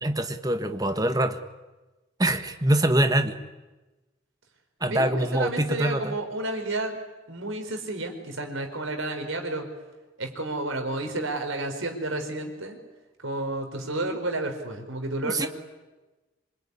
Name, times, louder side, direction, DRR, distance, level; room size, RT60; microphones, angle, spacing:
voice 1, 0.0-1.4 2.2-3.3 4.8-6.1 15.2-15.5, right 1 dB, 20° right, 8 dB, 1.4 m, -24 dB
voice 2, 4.9-7.0 7.3-9.7 10.2-12.8 13.2-15.5, right 2 dB, 80° right, 5 dB, 4.7 m, -31 dB
26.5 x 22.5 x 9.8 m, 1.1 s
head